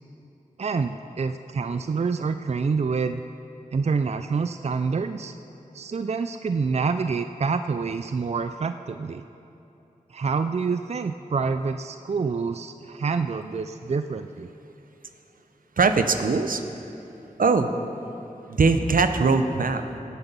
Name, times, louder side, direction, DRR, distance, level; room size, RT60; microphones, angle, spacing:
voice 1, 0.6-3.2 3.7-5.3 5.7-9.2 10.1-14.5, right 5 dB, 50° right, 9 dB, 0.4 m, -27 dB
voice 2, 15.8-16.6 17.4-17.7 18.5-19.8, right 4 dB, 80° right, 8 dB, 0.7 m, -21 dB
17.0 x 8.0 x 5.4 m, 3.0 s
wide cardioid pair, 55°, 14 cm